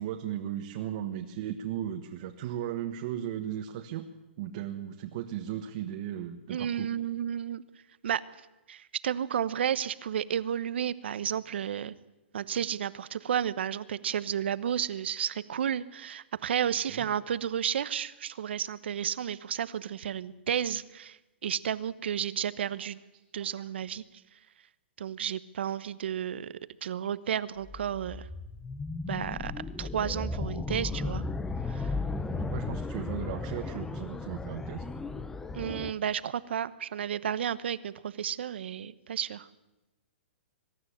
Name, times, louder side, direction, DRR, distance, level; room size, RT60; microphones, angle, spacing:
voice 1, 0.0-4.1 4.4-6.9 16.9-17.1 22.6-22.8 23.5-23.7 32.1-34.8, right 11 dB, 45° right, 4 dB, 1.4 m, -36 dB
voice 2, 6.5-7.6 8.0-8.2 8.7-11.9 12.3-23.0 23.3-24.0 25.0-26.5 26.8-28.3 29.1-29.5 29.8-31.2 31.7-31.9 35.5-39.5, right 9 dB, 70° right, 16 dB, 1.0 m, -32 dB
sound 1, 27.6-35.9, left 3 dB, 5° left, 0.7 m, -35 dB
23.0 x 12.5 x 9.9 m, 1.0 s
hypercardioid pair, 155°, 6 cm